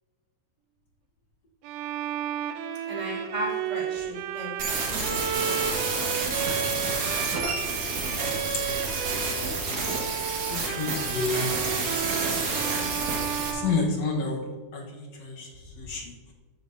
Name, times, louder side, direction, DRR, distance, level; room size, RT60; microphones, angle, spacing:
Bowed string instrument, 1.6-9.5 9.8-14.6, right 9 dB, 90° right, 1.4 m, -33 dB
voice 1, 2.9-5.6 12.7-13.6, equal, 15° right, -4 dB, 2.3 m, -37 dB
sound 1, 4.6-13.5, right 3 dB, 55° right, 2.8 m, -29 dB
voice 2, 10.5-11.7 13.5-14.4 14.7-15.5 15.8-16.1, left 4 dB, 60° left, 0 dB, 2.3 m, -29 dB
13.5 x 8.5 x 2.8 m, 1.4 s
omnidirectional pair, 3.5 m